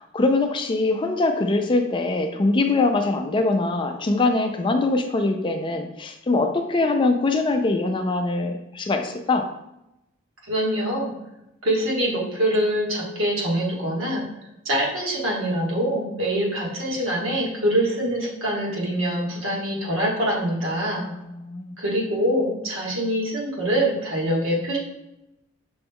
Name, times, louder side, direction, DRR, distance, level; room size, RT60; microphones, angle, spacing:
voice 1, 0.0-9.5 20.9-21.8, left 2 dB, 25° left, 5 dB, 0.3 m, -23 dB
voice 2, 10.5-11.1 11.6-14.2 14.6-21.0 21.8-24.8, right 1 dB, 90° right, -3 dB, 1.4 m, -24 dB
6.0 x 2.2 x 3.4 m, 0.88 s
head